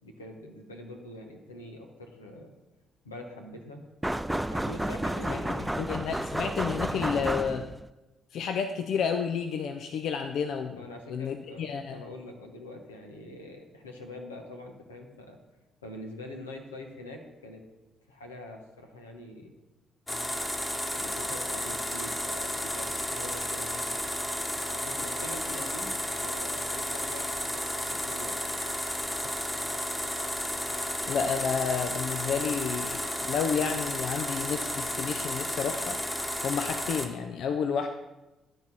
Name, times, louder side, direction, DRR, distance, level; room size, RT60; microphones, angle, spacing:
voice 1, 0.0-2.5 3.0-3.8 4.5-5.7 10.7-15.4 15.8-17.6 18.1-19.5 20.9-23.9 24.7-28.3, left 1 dB, 90° left, 2 dB, 0.9 m, -44 dB
sound 1, 4.0-7.9, right 1 dB, 5° right, 0.3 m, -31 dB
voice 2, 5.3-7.7 8.3-10.8 11.1-12.0 29.2-29.3 31.1-36.0 36.4-37.9, left 6 dB, 60° left, 7 dB, 0.5 m, -31 dB
sound 2, 20.1-37.1, equal, 15° left, 1.4 m, -32 dB
12.0 x 4.2 x 6.0 m, 1.0 s
figure-of-eight pair, 45°, 0 cm